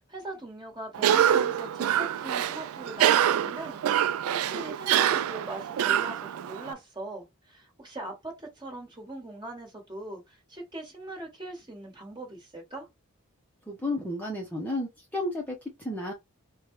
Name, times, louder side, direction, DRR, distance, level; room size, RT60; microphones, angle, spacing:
voice 1, 0.0-12.9, right 2 dB, 20° right, 1.4 m, -41 dB
Cough, 0.9-6.7, right 10 dB, 85° right, 0.3 m, -25 dB
voice 2, 13.7-16.1, left 1 dB, 10° left, 0.7 m, -32 dB
4.4 x 2.2 x 3.1 m
head